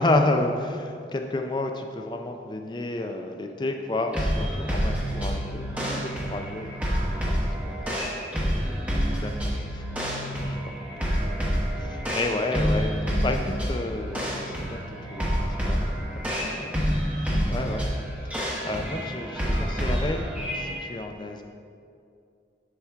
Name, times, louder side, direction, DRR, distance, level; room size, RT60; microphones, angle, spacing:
voice 1, 0.0-8.0 8.7-10.1 10.4-11.5 11.7-14.8 15.1-15.4 15.7-17.9 18.2-21.4, left 2 dB, 25° left, 4 dB, 0.4 m, -31 dB
sound 1, 4.1-20.8, equal, 10° right, 0.9 m, -28 dB
7.9 x 5.9 x 3.5 m, 2.4 s
head